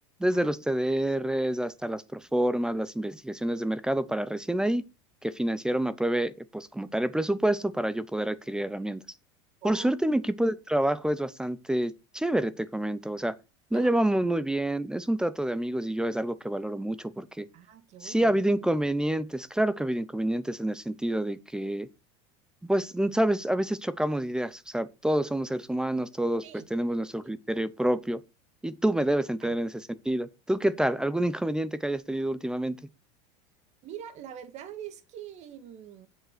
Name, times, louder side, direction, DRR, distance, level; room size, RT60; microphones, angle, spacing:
voice 1, 0.2-4.8 5.2-9.0 9.6-13.4 13.7-17.5 18.0-21.9 22.7-28.2 28.6-32.8, right 1 dB, 5° right, 0.6 m, -28 dB
voice 2, 9.6-9.9 13.7-14.0 17.5-18.3 26.4-26.7 27.2-27.3 29.0-29.1 29.4-29.6 33.8-36.1, right 9 dB, 45° right, 1.9 m, -44 dB
7.8 x 7.6 x 6.0 m
supercardioid pair, 125°, 16 cm